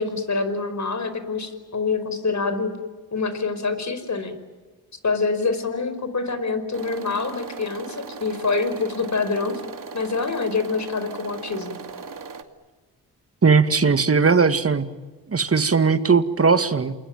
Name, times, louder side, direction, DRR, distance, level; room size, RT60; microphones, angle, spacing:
voice 1, 0.0-2.7 3.1-4.4 5.0-9.6 9.9-11.8, left 4 dB, 45° left, 11 dB, 5.1 m, -26 dB
sound 1, 6.7-12.4, right 5 dB, 55° right, 2.5 m, -38 dB
voice 2, 13.4-14.9 15.3-17.0, right 5 dB, 35° right, 11 dB, 2.0 m, -18 dB
28.5 x 21.5 x 9.1 m, 1.3 s
cardioid pair, 55°, 39 cm